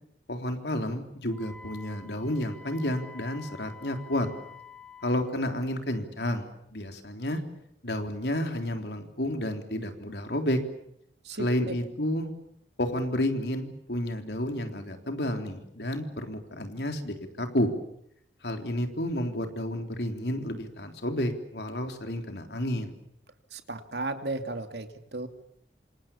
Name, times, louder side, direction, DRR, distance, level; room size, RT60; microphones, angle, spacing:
voice 1, 0.3-4.3 5.0-7.4 7.8-10.6 11.4-12.3 12.8-17.7 18.4-22.9, left 1 dB, 65° left, 5 dB, 3.7 m, -31 dB
Wind instrument woodwind instrument, 1.3-5.3, left 4 dB, 5° left, 1.6 m, -48 dB
voice 2, 11.2-11.8 23.5-25.3, right 2 dB, 70° right, 7 dB, 2.7 m, -35 dB
27.5 x 27.5 x 7.2 m, 0.74 s
head